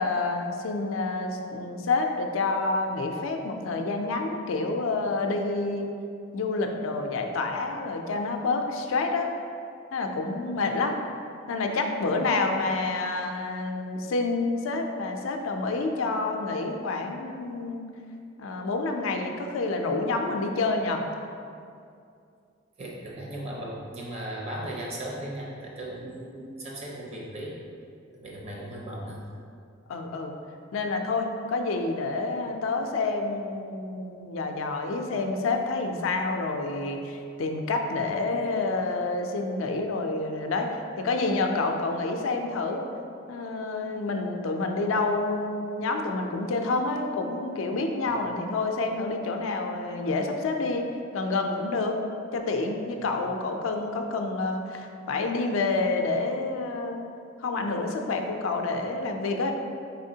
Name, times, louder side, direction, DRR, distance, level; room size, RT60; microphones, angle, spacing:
voice 1, 0.0-5.9 6.3-9.3 9.9-11.0 11.5-17.9 18.4-21.0 29.9-30.3 30.7-40.7 41.0-42.8 43.3-50.9 51.1-52.0 52.3-57.1 57.4-59.5, left 3 dB, 85° left, 4 dB, 0.4 m, -28 dB
voice 2, 22.8-27.6 28.1-29.3 48.1-48.2 52.9-53.2, right 1 dB, 35° right, -3 dB, 0.6 m, -37 dB
4.1 x 3.5 x 2.7 m, 2.4 s
head